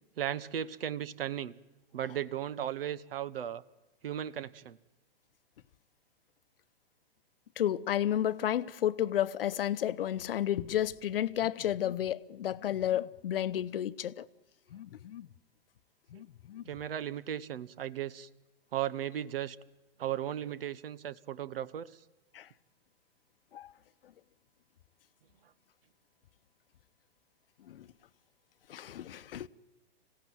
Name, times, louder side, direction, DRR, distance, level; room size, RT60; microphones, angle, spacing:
voice 1, 0.2-1.6 1.9-3.6 4.0-4.8 16.1-16.2 16.7-18.3 18.7-19.6 20.0-21.9, right 11 dB, 65° right, 1.1 m, -36 dB
voice 2, 7.6-14.2 14.7-15.3 16.1-16.6 22.3-22.5 23.5-23.7 27.7-27.8 28.7-29.5, left 11 dB, 65° left, 0.9 m, -32 dB
26.5 x 16.5 x 9.4 m
figure-of-eight pair, 110°, 31 cm